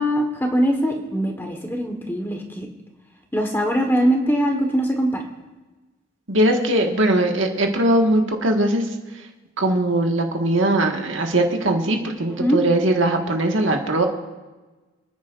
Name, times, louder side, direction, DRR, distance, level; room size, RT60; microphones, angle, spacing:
voice 1, 0.0-2.7 3.3-5.2 12.3-12.6, equal, 10° left, 3 dB, 1.3 m, -22 dB
voice 2, 6.3-8.9 9.6-14.0, right 1 dB, 75° right, 2 dB, 1.6 m, -20 dB
27.5 x 10.0 x 2.5 m, 1.2 s
head